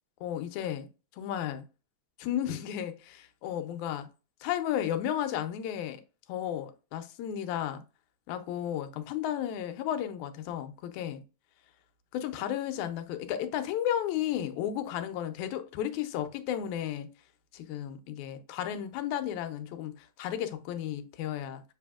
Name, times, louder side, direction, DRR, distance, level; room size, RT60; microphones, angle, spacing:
voice 1, 0.2-0.9 1.1-1.6 2.2-4.1 4.4-6.0 6.3-7.8 8.3-11.2 12.1-17.1 17.5-21.6, left 10 dB, 80° left, 2.0 m, -33 dB
6.9 x 3.4 x 2.3 m
omnidirectional pair, 3.4 m